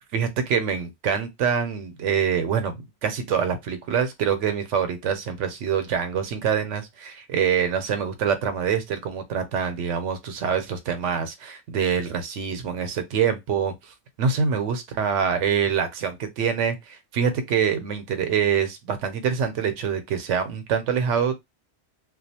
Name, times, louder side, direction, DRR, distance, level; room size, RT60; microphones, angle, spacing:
voice 1, 0.1-21.3, right 7 dB, 90° right, 0.9 m, -25 dB
2.4 x 2.1 x 2.7 m
omnidirectional pair, 1.2 m